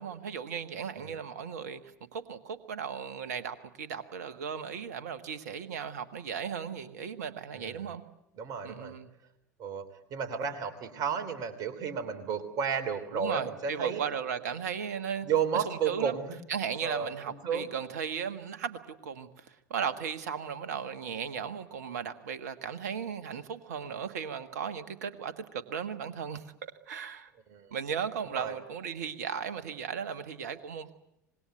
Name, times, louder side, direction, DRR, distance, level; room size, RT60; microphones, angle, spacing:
voice 1, 0.0-8.0 8.6-9.1 13.1-15.3 15.5-16.2 16.5-26.4 26.9-27.3 27.7-30.9, right 7 dB, 65° right, 12 dB, 1.5 m, -36 dB
voice 2, 7.5-7.9 8.4-8.9 9.6-9.8 10.1-14.0 15.2-16.4 16.8-17.7 27.5-27.7 28.3-28.6, right 7 dB, 40° right, 9 dB, 3.2 m, -32 dB
26.0 x 20.0 x 9.2 m, 0.80 s
figure-of-eight pair, 75°, 10 cm